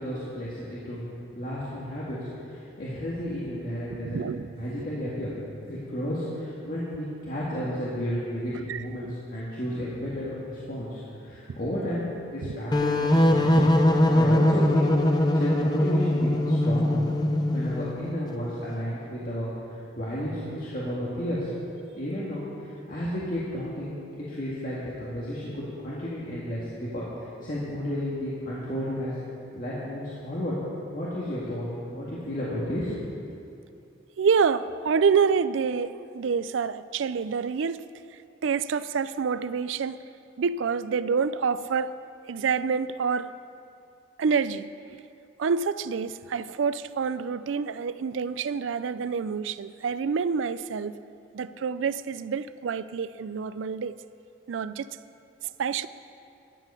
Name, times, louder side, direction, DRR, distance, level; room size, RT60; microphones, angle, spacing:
voice 1, 0.0-4.2 4.6-5.3 5.7-13.7 14.1-17.0 17.5-19.5 20.0-21.5 21.9-29.1 29.5-30.5 30.9-32.9, equal, 45° left, -8 dB, 1.9 m, -32 dB
voice 2, 3.9-4.9 8.7-9.1 12.4-12.5 13.6-13.7 29.6-29.7 34.2-37.8 38.4-40.0 40.4-41.9 42.3-43.3 44.2-45.0 45.4-51.0 51.3-54.0 54.5-54.9 55.4-55.9, right 6 dB, 85° right, 15 dB, 0.4 m, -27 dB
sound 1, 12.7-18.2, left 1 dB, 20° left, 0.7 m, -22 dB
12.5 x 8.3 x 6.7 m, 2.6 s
head